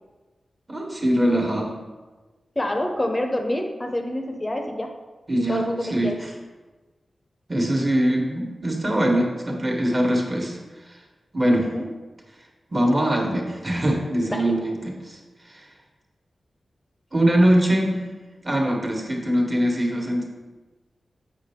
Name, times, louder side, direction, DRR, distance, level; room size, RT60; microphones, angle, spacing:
voice 1, 0.7-1.7 5.3-5.6 5.9-6.1 7.5-10.6 10.9-11.0 11.3-11.7 12.7-15.2 15.4-15.6 17.1-18.0 18.4-20.2, right 1 dB, 35° right, 0 dB, 1.4 m, -22 dB
voice 2, 2.6-4.9 5.5-6.2 11.5-11.9 14.3-14.5, left 1 dB, 25° left, 3 dB, 0.7 m, -27 dB
7.5 x 5.2 x 3.6 m, 1.3 s
wide cardioid pair, 90°, 0 cm